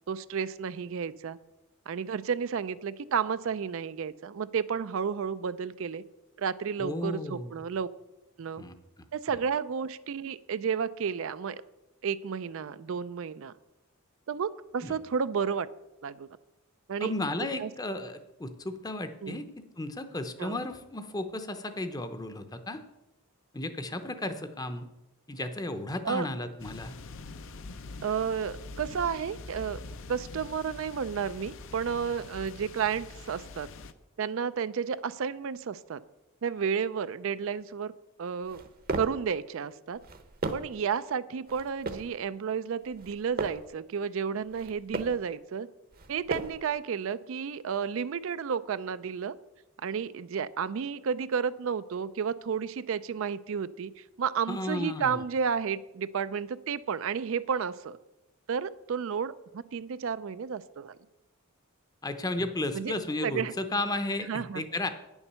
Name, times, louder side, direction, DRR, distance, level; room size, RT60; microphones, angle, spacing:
voice 1, 0.1-1.4 1.9-6.0 6.4-7.9 8.4-8.6 9.1-11.6 12.0-13.5 14.3-15.7 16.0-16.3 16.9-17.1 17.6-17.7 19.2-19.5 20.4-20.6 26.0-26.3 28.0-29.8 30.1-33.7 34.2-36.0 36.4-37.9 38.2-38.6 39.0-40.0 40.5-45.7 46.1-49.4 49.8-58.0 58.5-61.0 62.7-62.9 63.2-63.5 64.3-64.6, right 6 dB, 60° right, 14 dB, 0.4 m, -32 dB
voice 2, 6.8-7.6 8.6-9.4 14.8-15.0 17.0-22.8 23.5-24.8 25.3-26.9 54.5-55.2 62.0-64.9, left 2 dB, 15° left, 10 dB, 0.7 m, -34 dB
sound 1, 26.6-33.9, left 3 dB, 60° left, 0.6 m, -44 dB
sound 2, 38.4-39.3 39.9-40.8 41.5-42.2 42.8-43.7 44.4-45.3 45.9-46.7, right 2 dB, 40° right, 0.8 m, -36 dB
9.6 x 7.1 x 6.8 m, 0.98 s
head